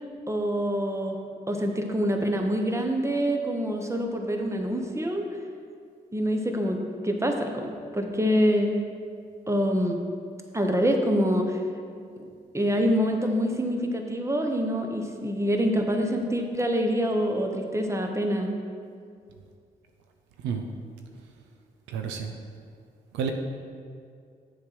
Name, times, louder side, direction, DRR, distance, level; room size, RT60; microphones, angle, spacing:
voice 1, 0.3-1.2 1.5-5.2 6.1-6.8 7.0-8.8 9.5-10.0 10.5-11.6 12.5-18.5, equal, 15° right, 3 dB, 1.2 m, -26 dB
voice 2, 21.9-22.3 23.1-23.3, right 7 dB, 90° right, 4 dB, 0.5 m, -30 dB
7.1 x 5.1 x 6.1 m, 2.3 s
hypercardioid pair, 45°, 18 cm